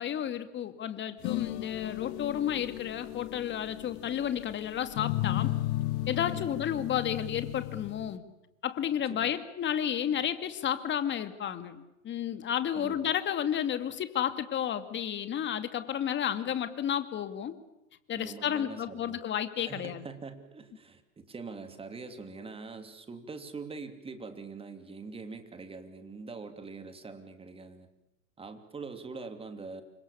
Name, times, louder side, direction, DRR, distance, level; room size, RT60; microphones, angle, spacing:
voice 1, 0.0-5.5 6.1-8.2 8.6-17.5 18.1-20.0, left 9 dB, 25° left, 10 dB, 2.4 m, -32 dB
sound 1, 1.2-8.2, left 16 dB, 50° left, 1.8 m, -35 dB
voice 2, 12.7-13.1 18.1-19.2 19.6-27.9 28.4-29.8, right 4 dB, 15° right, 8 dB, 2.9 m, -43 dB
29.5 x 26.0 x 7.1 m, 0.89 s
hypercardioid pair, 125°, 43 cm